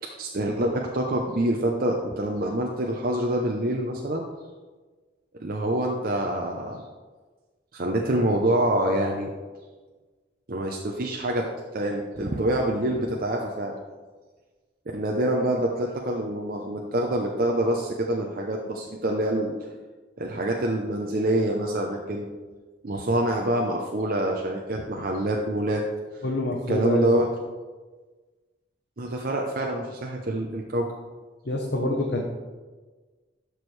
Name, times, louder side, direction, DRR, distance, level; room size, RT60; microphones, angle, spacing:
voice 1, 0.0-4.2 5.4-6.8 7.7-9.3 10.5-13.8 14.9-19.5 20.2-22.3 22.8-25.8 26.7-27.3 29.0-30.9, right 1 dB, 50° right, 0 dB, 0.7 m, -26 dB
voice 2, 26.2-27.2 31.5-32.2, left 1 dB, 65° left, 0 dB, 1.0 m, -26 dB
11.5 x 6.2 x 3.3 m, 1.3 s
head